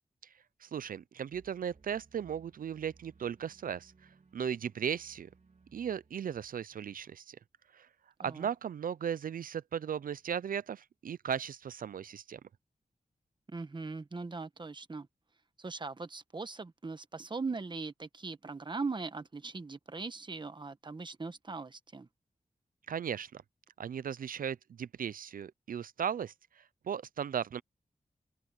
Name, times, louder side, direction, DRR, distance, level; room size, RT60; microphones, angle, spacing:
voice 1, 0.6-5.3 5.7-7.4 7.7-7.9 8.2-12.4 22.9-23.4 23.8-27.6, right 8 dB, 70° right, 0.4 m, -37 dB
sound 1, 1.3-7.0, right 4 dB, 55° right, 2.6 m, -63 dB
voice 2, 13.5-15.1 15.6-22.1, right 4 dB, 30° right, 1.1 m, -40 dB
open air
wide cardioid pair, 120°, 15 cm